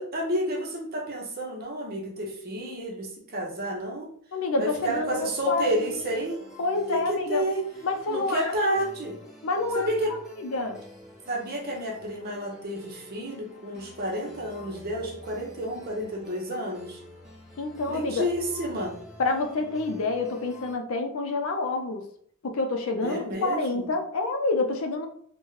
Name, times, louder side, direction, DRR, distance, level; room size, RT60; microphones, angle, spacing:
voice 1, 0.0-4.1 4.6-6.4 6.9-7.6 8.1-9.2 9.7-10.1 11.3-17.0 17.9-19.0 23.0-23.9, equal, 45° right, -1 dB, 0.8 m, -30 dB
voice 2, 4.3-6.0 6.6-7.5 7.8-8.8 9.4-9.9 10.4-10.8 17.6-18.3 19.2-22.1 22.4-25.1, left 3 dB, 70° left, 4 dB, 0.5 m, -28 dB
sound 1, 4.7-20.7, left 1 dB, ahead, 0.8 m, -48 dB
3.5 x 2.2 x 3.1 m, 0.63 s
head